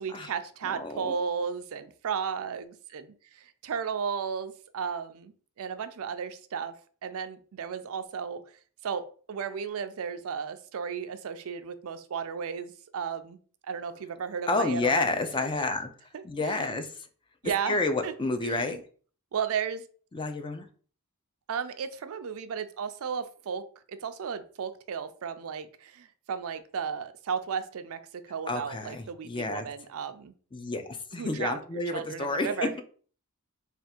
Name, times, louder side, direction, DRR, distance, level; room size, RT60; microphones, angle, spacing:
voice 1, 0.0-6.7 7.0-8.4 8.8-13.4 13.6-15.1 16.1-16.8 17.4-18.1 18.4-18.8 19.3-19.9 21.5-23.6 23.9-28.0 28.2-30.3 31.2-31.6 31.9-32.7, right 6 dB, 70° right, 11 dB, 0.4 m, -34 dB
voice 2, 0.6-1.1 14.5-15.9 16.2-17.1 17.4-18.8 20.1-20.7 28.5-29.7 30.5-32.8, left 3 dB, 20° left, 7 dB, 0.4 m, -30 dB
3.4 x 2.4 x 4.2 m, 0.43 s
head